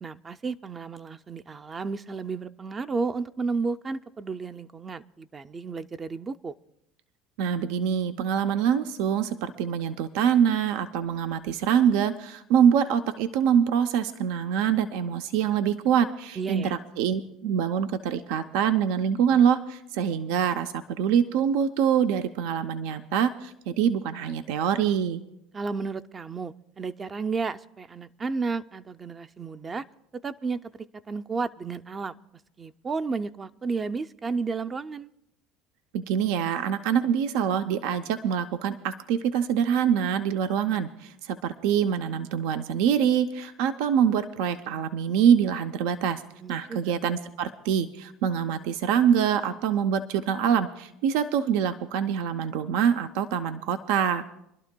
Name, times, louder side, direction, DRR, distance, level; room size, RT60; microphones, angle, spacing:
voice 1, 0.0-6.5 16.4-16.7 25.5-29.9 30.1-32.2 32.6-35.1 46.4-46.9, right 4 dB, 25° right, 11 dB, 0.4 m, -32 dB
voice 2, 7.4-25.2 35.9-46.2 46.5-54.2, right 8 dB, 75° right, 9 dB, 0.5 m, -25 dB
27.0 x 11.5 x 2.2 m, 0.79 s
supercardioid pair, 95°, 0 cm